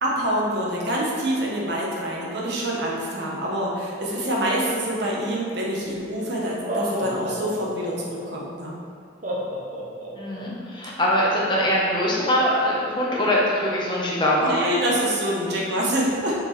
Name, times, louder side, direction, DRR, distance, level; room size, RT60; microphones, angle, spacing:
voice 1, 0.0-8.7 14.4-16.3, right 1 dB, 60° right, -4 dB, 1.3 m, -26 dB
Laughter, 5.8-5.9 6.5-8.2 9.2-10.5, equal, 40° right, 1.0 m, -31 dB
voice 2, 10.1-14.5, equal, 25° left, -5 dB, 1.2 m, -22 dB
5.5 x 4.7 x 4.3 m, 2.5 s
head